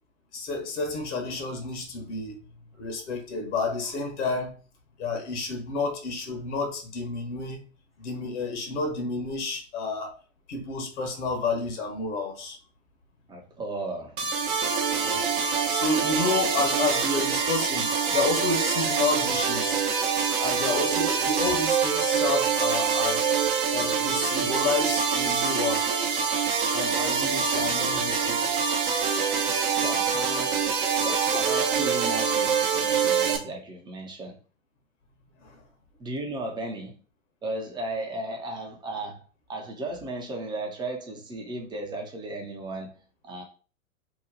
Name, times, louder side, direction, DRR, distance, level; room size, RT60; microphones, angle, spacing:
voice 1, 0.3-2.4 2.8-4.5 5.0-7.6 8.0-10.1 10.5-12.6 14.9-19.8 20.4-23.3 23.7-25.9 26.7-28.6 35.4-35.6, left 3 dB, 60° left, 1.2 m, -30 dB
voice 2, 13.3-14.7 29.8-30.7 31.0-34.4 36.0-37.0 37.4-39.2 39.5-43.0 43.2-43.4, right 2 dB, 10° right, 0.6 m, -35 dB
sound 1, 14.2-33.4, right 6 dB, 40° right, 0.8 m, -25 dB
3.0 x 2.3 x 3.7 m
hypercardioid pair, 110°, 41 cm